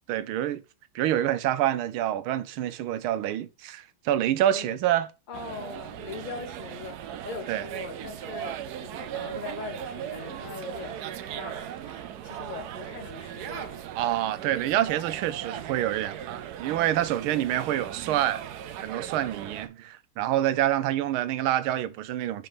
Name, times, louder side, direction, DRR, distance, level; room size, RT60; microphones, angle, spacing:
voice 1, 0.1-0.6 0.9-5.1 7.5-7.7 14.0-18.4 18.8-22.5, right 12 dB, 90° right, 1.5 m, -27 dB
voice 2, 4.4-4.8 5.3-13.8, left 4 dB, 90° left, 0.4 m, -41 dB
sound 1, 5.3-19.7, right 9 dB, 70° right, 1.0 m, -38 dB
5.4 x 4.6 x 4.9 m
omnidirectional pair, 2.2 m